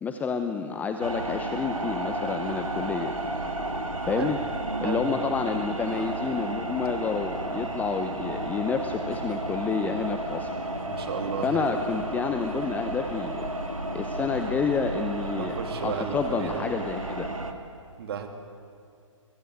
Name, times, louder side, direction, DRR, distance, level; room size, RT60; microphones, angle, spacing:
voice 1, 0.0-3.1 4.0-4.4 4.8-10.5 11.4-13.5 13.9-15.5 15.8-17.3, left 5 dB, 10° left, 7 dB, 0.7 m, -29 dB
sound 1, 1.0-17.5, right 1 dB, 90° right, 2.5 m, -32 dB
voice 2, 10.9-11.8 15.4-16.7 18.0-18.3, right 6 dB, 50° right, 5 dB, 2.9 m, -34 dB
22.0 x 20.5 x 9.5 m, 2.4 s
figure-of-eight pair, 130°, 17 cm